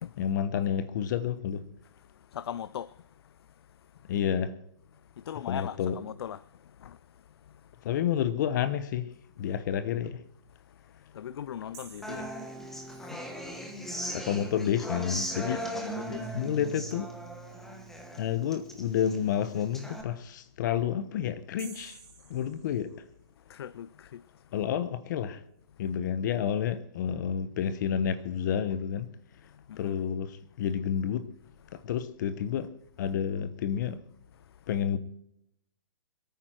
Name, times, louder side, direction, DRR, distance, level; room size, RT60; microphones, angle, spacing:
voice 1, 0.2-1.7 4.1-4.5 5.5-6.0 7.8-9.1 9.4-10.2 14.1-15.6 16.3-17.1 18.2-22.0 22.3-22.9 24.5-25.4 25.8-29.1 29.8-31.3 31.7-32.7 33.0-34.0 34.7-35.0, left 9 dB, 40° left, 1.0 m, -30 dB
voice 2, 2.3-2.9 5.3-6.4 6.8-7.0 11.1-12.3 15.4-16.7 23.5-24.2 29.7-30.0, left 10 dB, 60° left, 0.4 m, -39 dB
sound 1, 11.7-13.3 21.6-23.4, right 7 dB, 25° right, 4.7 m, -52 dB
Human voice / Acoustic guitar, 12.0-20.0, right 1 dB, ahead, 1.2 m, -38 dB
25.5 x 9.3 x 4.5 m
hypercardioid pair, 155°, 15 cm